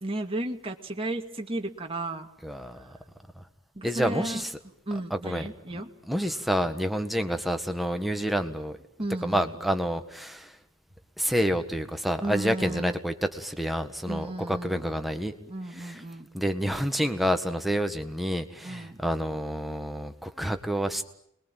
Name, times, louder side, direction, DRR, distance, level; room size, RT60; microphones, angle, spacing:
voice 1, 0.0-2.3 3.8-4.4 4.9-5.9 9.0-9.6 12.2-12.9 14.1-14.9 15.5-16.3 18.6-19.0, right 1 dB, 25° right, 3 dB, 2.3 m, -34 dB
voice 2, 2.4-3.0 3.4-3.5 3.8-4.5 5.1-5.5 5.7-8.8 9.2-10.5 11.2-15.3 15.7-16.0 16.3-21.0, equal, ahead, 6 dB, 1.7 m, -28 dB
29.0 x 21.5 x 9.2 m, 0.72 s
head